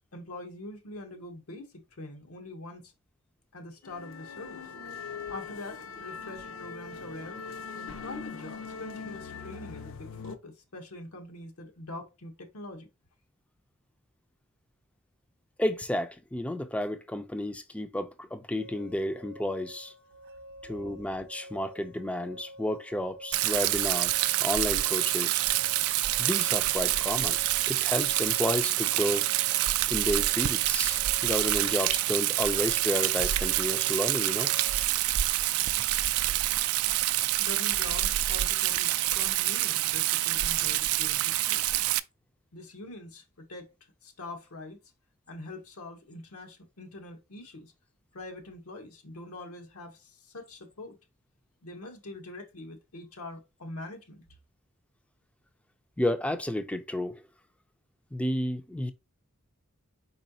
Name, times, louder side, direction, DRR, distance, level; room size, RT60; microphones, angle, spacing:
voice 1, 0.1-1.7 2.0-2.9 3.5-4.6 5.3-7.4 7.7-12.9 37.4-41.6 42.5-43.7 44.0-44.8 45.3-47.7 48.1-51.0 51.6-54.2, left 2 dB, 90° left, 1.0 m, -44 dB
sound 1, 3.8-10.4, left 5 dB, 65° left, 0.6 m, -41 dB
voice 2, 15.6-19.9 20.6-25.5 26.2-27.4 27.7-29.3 29.9-34.5 56.0-57.1 58.1-58.9, left 1 dB, 5° left, 0.3 m, -31 dB
sound 2, 18.6-34.8, equal, 55° right, 0.7 m, -48 dB
Rain, 23.3-42.0, right 15 dB, 80° right, 0.3 m, -27 dB
4.6 x 4.1 x 2.7 m
head